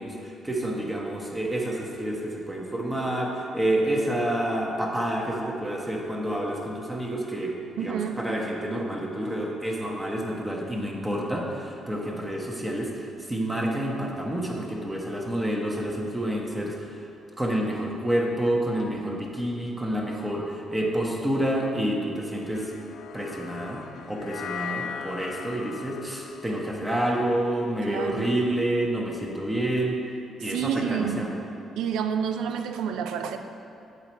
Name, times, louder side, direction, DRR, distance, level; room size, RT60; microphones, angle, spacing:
voice 1, 0.0-7.5 7.8-16.9 17.4-22.7 23.1-23.8 24.1-30.0 30.4-31.3, right 1 dB, 15° right, -2 dB, 1.0 m, -28 dB
voice 2, 7.8-8.2 27.9-28.4 30.4-31.3 31.8-33.4, right 7 dB, 85° right, 7 dB, 0.4 m, -29 dB
sound 1, 22.5-28.9, left 7 dB, 70° left, 0.3 m, -40 dB
7.7 x 4.1 x 4.4 m, 2.7 s
cardioid pair, 90°, 0 cm